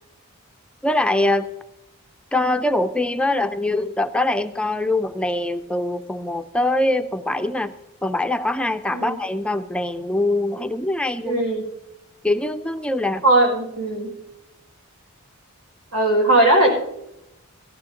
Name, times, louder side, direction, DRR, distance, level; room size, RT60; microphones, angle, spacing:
voice 1, 0.8-1.5 2.3-7.7 8.0-11.4 12.2-13.2, left 1 dB, 5° left, 8 dB, 0.4 m, -23 dB
voice 2, 11.2-11.6 13.2-14.1 15.9-16.7, right 1 dB, 90° right, -1 dB, 5.8 m, -18 dB
17.0 x 14.5 x 2.8 m, 0.85 s
head